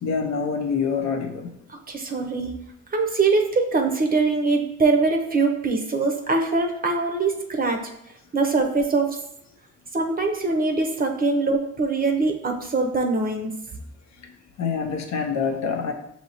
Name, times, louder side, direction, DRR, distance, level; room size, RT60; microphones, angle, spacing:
voice 1, 0.0-1.5 14.2-14.3 14.6-15.9, left 5 dB, 65° left, 4 dB, 0.7 m, -26 dB
voice 2, 1.7-2.6 2.9-7.8 8.3-9.2 9.9-13.5, right 3 dB, 30° right, 3 dB, 0.6 m, -23 dB
6.1 x 2.8 x 2.8 m, 0.77 s
cardioid pair, 90°, 30 cm